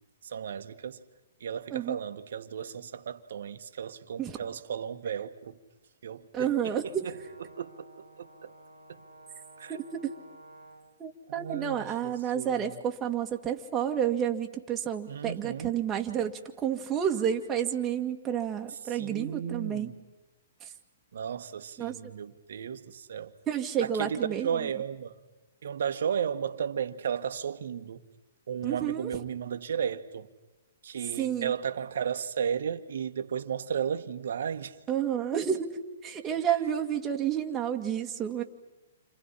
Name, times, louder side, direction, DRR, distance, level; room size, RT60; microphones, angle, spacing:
voice 1, 0.2-1.0 1.4-5.6 6.0-7.2 7.5-8.5 8.9-9.0 9.6-9.8 11.4-12.8 15.1-15.8 18.7-20.0 21.1-23.3 23.8-25.2 25.6-28.0 28.5-30.3 30.8-34.8, right 8 dB, 70° right, 1.6 m, -34 dB
voice 2, 6.3-7.1 9.7-9.8 11.0-19.9 21.8-21.9 23.5-24.6 28.6-29.1 31.2-31.5 34.9-35.7 36.0-38.4, right 9 dB, 20° right, 2.1 m, -30 dB
Brass instrument, 6.6-11.0, right 1 dB, 85° left, 6.2 m, -53 dB
29.5 x 26.5 x 5.8 m
hypercardioid pair, 130°, 0 cm